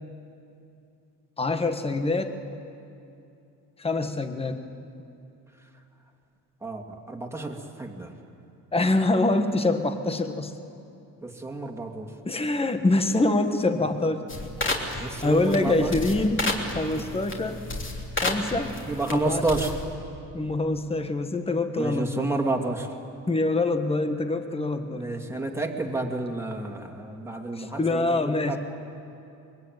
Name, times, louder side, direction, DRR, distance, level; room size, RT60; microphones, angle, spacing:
voice 1, 1.4-2.4 3.8-4.6 8.7-10.5 12.2-14.3 14.9-16.5 16.7-17.6 18.1-18.7 19.1-19.4 20.3-22.3 23.3-25.0 27.6-28.6, left 2 dB, 15° left, 7 dB, 1.4 m, -25 dB
voice 2, 6.6-8.1 11.2-12.1 13.7-13.8 14.9-16.0 17.0-17.2 18.9-19.8 21.8-22.9 24.9-28.6, right 2 dB, 5° right, 2 dB, 2.5 m, -30 dB
sound 1, 14.3-19.9, left 2 dB, 35° left, 3.3 m, -32 dB
24.0 x 22.5 x 9.4 m, 2.7 s
cardioid pair, 115°, 36 cm